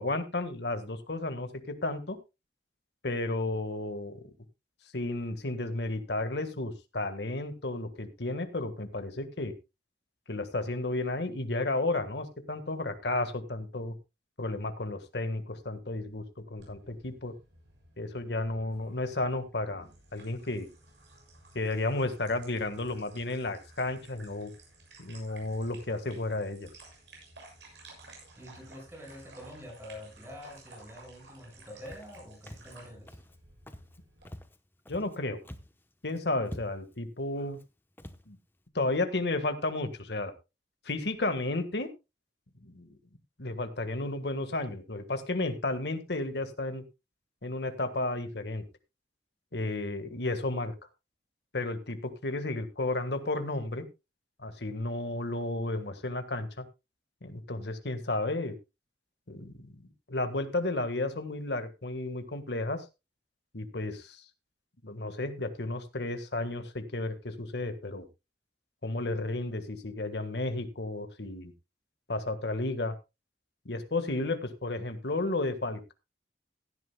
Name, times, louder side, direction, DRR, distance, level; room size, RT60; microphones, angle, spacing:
voice 1, 0.0-2.2 3.0-4.3 4.9-9.5 10.3-14.0 14.4-17.3 18.0-20.7 21.5-24.5 25.0-26.7 34.9-35.4 36.0-37.6 38.3-38.4 38.7-40.3 40.8-41.9 42.6-42.9 43.4-46.8 47.4-48.6 49.5-50.7 51.5-53.9 54.4-56.6 57.2-58.6 59.3-62.8 63.5-64.2 64.8-68.1 68.8-71.5 72.1-72.9 73.6-75.9, left 2 dB, 70° left, 9 dB, 1.6 m, -33 dB
sound 1, 16.6-34.2, right 2 dB, 90° right, 7.2 m, -55 dB
voice 2, 28.4-33.2, left 1 dB, 15° right, 1 dB, 6.3 m, -46 dB
Walk footsteps, 31.9-32.2 32.5-32.8 33.1-33.4 33.7-34.0 34.3-35.2 35.4-35.8 36.1-36.2 36.4-37.0 37.5-37.7 38.0-38.2, left 1 dB, 10° left, 0.9 m, -46 dB
16.5 x 11.5 x 2.2 m, 0.26 s
head